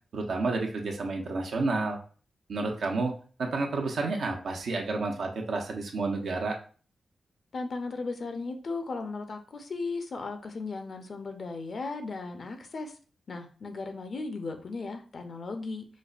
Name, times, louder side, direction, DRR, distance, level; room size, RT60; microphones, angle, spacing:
voice 1, 0.1-2.0 2.5-3.1 3.4-6.6, right 3 dB, 75° right, 2 dB, 0.7 m, -30 dB
voice 2, 7.5-12.9 13.3-15.9, left 3 dB, 60° left, 6 dB, 0.6 m, -36 dB
5.1 x 2.1 x 2.4 m, 0.40 s
cardioid pair, 55°, 0 cm